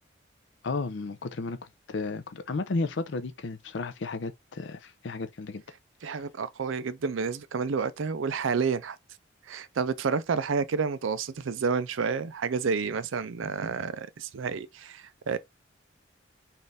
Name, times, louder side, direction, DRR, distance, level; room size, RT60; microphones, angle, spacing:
voice 1, 0.6-5.6 6.0-6.2, left 3 dB, 65° left, 0.5 m, -33 dB
voice 2, 6.0-9.0 9.5-15.4, right 5 dB, 85° right, 0.5 m, -30 dB
4.2 x 2.5 x 3.4 m
head